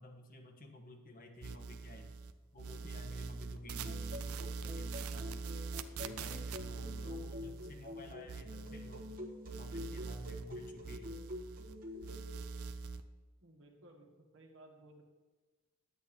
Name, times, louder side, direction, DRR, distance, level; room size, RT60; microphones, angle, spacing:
voice 1, 0.0-2.1 2.5-5.4 6.0-9.2 9.6-11.1, left 1 dB, 40° left, 4 dB, 1.2 m, -52 dB
sound 1, 1.4-2.3 2.6-9.2 9.4-11.7 12.0-13.0, right 4 dB, 85° right, 0.6 m, -43 dB
sound 2, 3.7-12.3, left 1 dB, 40° right, 1.4 m, -47 dB
voice 2, 13.4-15.0, right 1 dB, 65° right, 1 dB, 1.6 m, -58 dB
10.5 x 8.4 x 4.3 m, 1.3 s
head